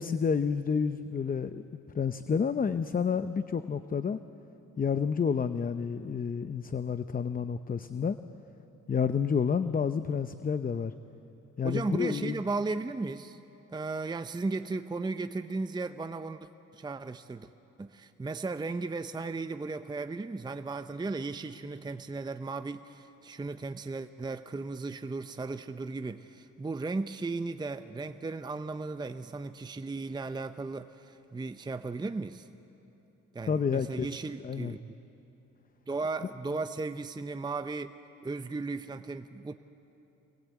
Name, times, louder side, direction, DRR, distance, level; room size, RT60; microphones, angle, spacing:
voice 1, 0.0-1.6 1.9-4.2 4.8-8.2 8.9-10.9 11.6-12.4 33.5-34.1 34.4-34.8, left 6 dB, 30° left, 11 dB, 0.7 m, -29 dB
voice 2, 11.6-13.4 13.7-17.5 17.8-32.5 33.3-34.9 35.9-37.9 38.2-39.5, right 3 dB, 15° right, 10 dB, 0.6 m, -36 dB
25.0 x 20.0 x 8.3 m, 2.9 s
cardioid pair, 90°, 30 cm